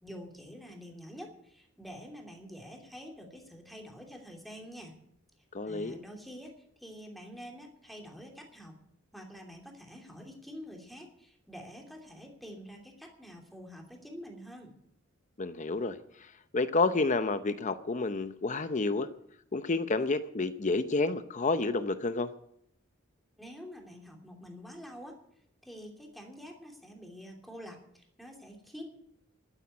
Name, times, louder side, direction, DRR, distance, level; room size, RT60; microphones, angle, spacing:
voice 1, 0.0-4.9 5.6-8.8 9.1-14.7 23.4-25.1 25.6-28.8, equal, ahead, 1 dB, 2.9 m, -47 dB
voice 2, 5.5-6.0 15.4-16.0 16.5-19.1 19.5-22.3, left 3 dB, 35° left, 11 dB, 0.7 m, -29 dB
12.5 x 9.0 x 9.4 m, 0.70 s
head